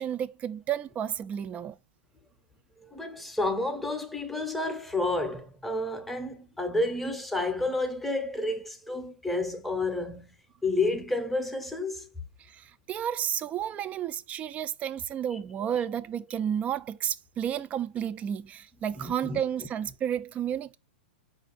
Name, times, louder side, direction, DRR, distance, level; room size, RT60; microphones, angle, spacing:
voice 1, 0.0-1.8 12.5-20.8, right 9 dB, 25° right, 0.3 m, -32 dB
voice 2, 2.8-10.3 10.6-12.1 19.0-19.4, left 2 dB, ahead, 0.7 m, -30 dB
5.0 x 2.5 x 3.9 m
hypercardioid pair, 120°, 6 cm